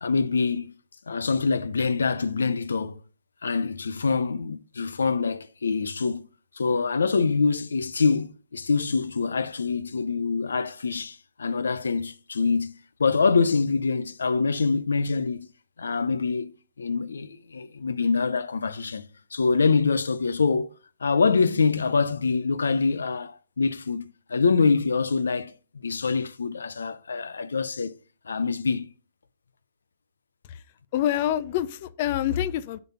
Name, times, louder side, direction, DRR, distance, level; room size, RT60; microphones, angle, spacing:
voice 1, 0.0-0.7 1.1-3.0 3.4-6.2 6.5-12.7 13.0-15.4 15.8-19.1 19.3-20.7 21.0-28.0 28.2-28.9, left 4 dB, 90° left, 0.5 m, -25 dB
voice 2, 30.9-32.8, left 11 dB, 45° left, 0.5 m, -26 dB
7.1 x 3.9 x 5.7 m
hypercardioid pair, 140°, 0 cm